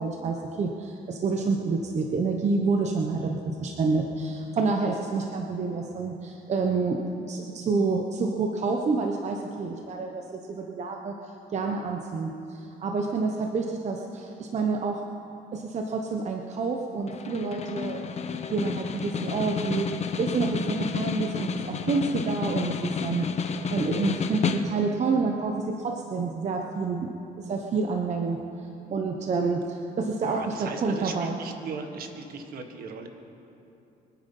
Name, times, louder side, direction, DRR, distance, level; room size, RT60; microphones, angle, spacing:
voice 1, 0.0-11.1 11.5-15.0 15.5-18.0 18.3-27.1 27.4-28.4 28.9-31.3, right 4 dB, 40° right, 2 dB, 1.1 m, -28 dB
Snare drum, 17.1-25.0, left 6 dB, 40° left, 1.0 m, -31 dB
voice 2, 30.2-33.1, right 5 dB, 60° right, 5 dB, 1.8 m, -38 dB
24.0 x 9.4 x 5.6 m, 2.8 s
cardioid pair, 110°, 17 cm